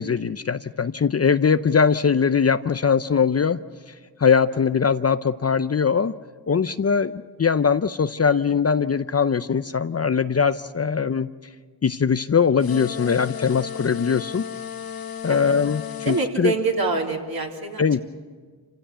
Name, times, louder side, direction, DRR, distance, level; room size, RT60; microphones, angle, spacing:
voice 1, 0.0-3.6 4.2-6.1 6.5-11.3 11.8-14.4 15.2-16.5 17.8-18.0, left 6 dB, 35° left, 12 dB, 0.6 m, -21 dB
sound 1, 12.6-16.3, left 9 dB, 50° left, 1.3 m, -34 dB
voice 2, 16.0-18.0, right 3 dB, 55° right, 0 dB, 3.6 m, -26 dB
27.5 x 16.0 x 8.3 m, 1.5 s
cardioid pair, 65°, 44 cm